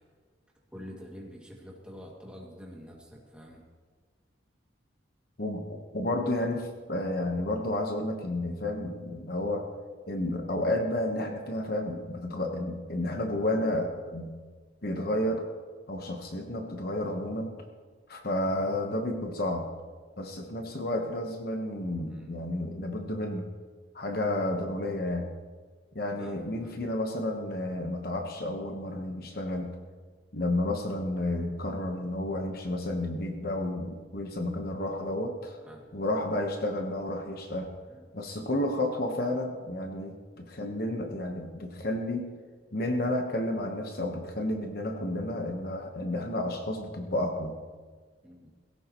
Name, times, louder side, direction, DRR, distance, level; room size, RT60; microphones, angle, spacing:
voice 1, 0.7-3.6 22.1-22.4 26.2-26.7 35.6-35.9 37.9-38.1 48.2-48.5, equal, 5° right, -3 dB, 2.3 m, -46 dB
voice 2, 5.4-9.6 10.1-14.4 14.8-15.4 15.9-17.5 18.1-19.7 20.2-23.4 23.9-25.3 25.9-29.7 30.3-35.6 35.9-37.7 38.1-42.3 42.7-47.6, left 1 dB, 50° left, 3 dB, 1.2 m, -31 dB
18.5 x 16.5 x 3.1 m, 1.5 s
head